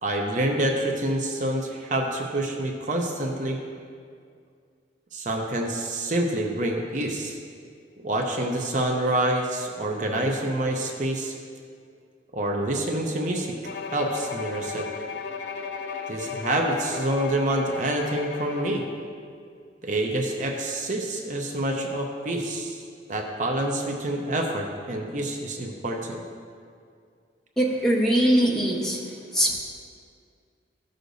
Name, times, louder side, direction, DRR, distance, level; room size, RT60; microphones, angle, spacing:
voice 1, 0.0-3.6 5.1-7.4 8.0-11.3 12.3-13.6 13.9-14.9 16.1-18.8 19.8-22.8 23.1-26.2, right 1 dB, 45° right, 1 dB, 0.7 m, -27 dB
Bowed string instrument, 13.6-19.0, left 6 dB, 70° left, 0.5 m, -35 dB
voice 2, 27.6-29.0 29.3-29.6, right 1 dB, 5° left, -3 dB, 0.9 m, -21 dB
13.5 x 6.5 x 2.6 m, 2.3 s
head